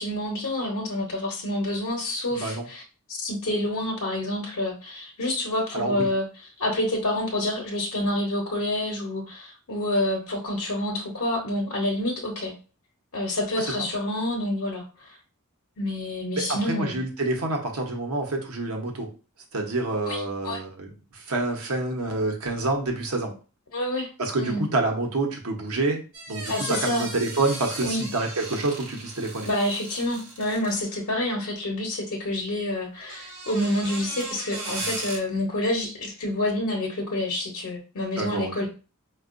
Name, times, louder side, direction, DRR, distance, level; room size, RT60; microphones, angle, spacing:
voice 1, 0.0-2.8 3.1-6.3 6.6-12.5 13.1-15.2 15.8-17.0 20.1-20.6 23.7-24.1 24.4-24.6 26.5-27.1 27.8-28.1 29.5-38.7, left 1 dB, 85° left, 0 dB, 0.8 m, -28 dB
voice 2, 2.3-2.6 5.7-6.1 16.4-19.1 19.5-23.3 24.2-26.0 26.3-29.5 38.2-38.5, right 2 dB, 90° right, 2 dB, 0.8 m, -27 dB
sound 1, 26.1-31.0 32.9-35.2, right 2 dB, 65° right, 1.1 m, -37 dB
4.4 x 2.3 x 2.4 m, 0.34 s
head